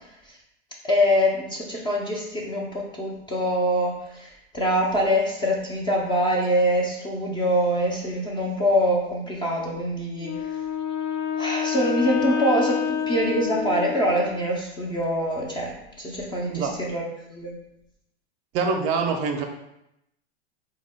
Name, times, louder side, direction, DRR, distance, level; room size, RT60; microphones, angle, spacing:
voice 1, 0.8-10.5 11.4-17.0 17.3-17.6, equal, 15° left, -2 dB, 0.4 m, -24 dB
Wind instrument woodwind instrument, 10.2-14.4, left 8 dB, 85° left, 0.6 m, -28 dB
voice 2, 16.4-16.8 18.5-19.4, right 5 dB, 40° right, 4 dB, 0.5 m, -25 dB
3.5 x 2.2 x 3.4 m, 0.83 s
hypercardioid pair, 105°, 34 cm